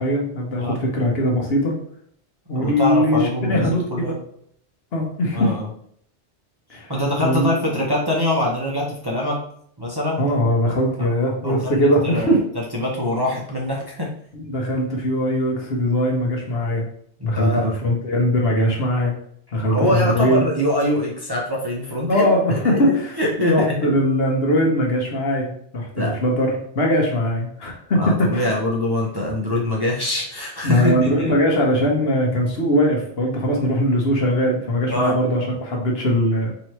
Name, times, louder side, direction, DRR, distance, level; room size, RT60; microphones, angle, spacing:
voice 1, 0.0-1.7 2.5-4.1 4.9-5.5 6.7-6.9 7.2-7.5 10.2-12.4 14.4-16.8 17.2-19.1 19.5-20.4 22.1-28.5 30.6-36.5, equal, 60° left, 0 dB, 1.1 m, -20 dB
voice 2, 2.6-4.2 5.3-5.7 6.9-9.4 9.8-10.2 11.0-11.1 11.4-12.4 12.7-14.1 17.3-17.7 19.6-22.2 22.6-23.8 26.0-26.1 28.0-31.3 34.9-35.1, left 1 dB, 25° right, -3 dB, 0.6 m, -23 dB
4.7 x 3.0 x 3.1 m, 0.66 s
omnidirectional pair, 1.2 m